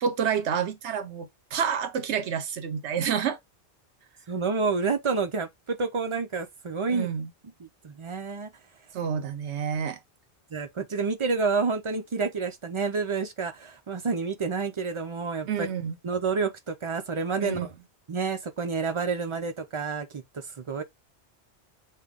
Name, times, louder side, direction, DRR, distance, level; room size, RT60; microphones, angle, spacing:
voice 1, 0.0-3.4 6.9-7.3 8.9-10.0 15.5-16.0 17.4-17.7, right 7 dB, 80° right, 0.9 m, -29 dB
voice 2, 4.3-7.1 7.6-8.5 10.5-15.7 16.0-17.7 18.1-20.8, right 4 dB, 50° right, 0.3 m, -29 dB
5.4 x 2.2 x 3.4 m
omnidirectional pair, 1.2 m